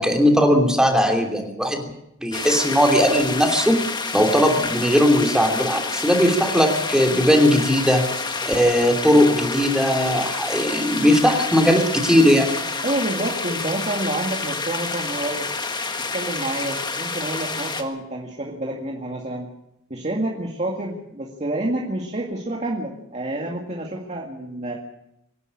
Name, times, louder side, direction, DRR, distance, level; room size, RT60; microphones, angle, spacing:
voice 1, 0.0-1.9 2.2-3.8 4.1-8.0 8.4-12.6, equal, 5° right, 3 dB, 2.9 m, -18 dB
sound 1, 2.3-17.8, left 4 dB, 20° left, 1.6 m, -29 dB
voice 2, 12.8-15.5 16.0-19.5 19.9-24.7, right 1 dB, 30° right, 0 dB, 2.1 m, -28 dB
25.0 x 11.0 x 9.9 m, 0.82 s
head